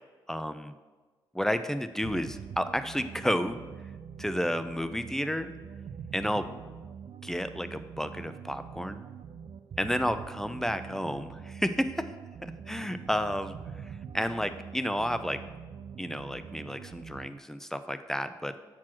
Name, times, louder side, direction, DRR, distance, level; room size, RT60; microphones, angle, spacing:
voice 1, 0.3-0.7 1.3-3.6 4.2-5.5 6.1-6.5 7.2-9.0 9.8-12.1 12.4-15.4 16.0-18.5, equal, 5° left, 10 dB, 0.5 m, -31 dB
sound 1, 2.0-17.4, right 7 dB, 50° right, 0.4 m, -44 dB
6.1 x 4.4 x 6.0 m, 1.3 s
hypercardioid pair, 40°, 11 cm